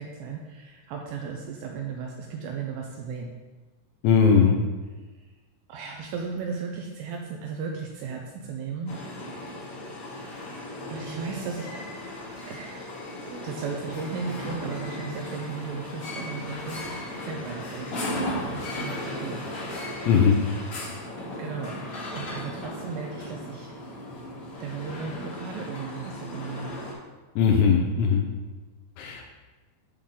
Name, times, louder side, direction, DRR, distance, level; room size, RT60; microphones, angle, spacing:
voice 1, 0.0-3.3 5.2-5.3 5.7-8.9 9.5-11.8 12.5-12.9 13.3-19.4 21.4-23.7 24.6-26.7, right 5 dB, 80° right, 1 dB, 2.6 m, -36 dB
voice 2, 4.0-4.6 20.1-20.4 27.4-28.3 29.0-29.3, left 6 dB, 85° left, 2 dB, 2.9 m, -19 dB
sound 1, 8.9-26.9, left 1 dB, 55° left, 1.5 m, -36 dB
8.5 x 6.2 x 3.8 m, 1.3 s
omnidirectional pair, 5.5 m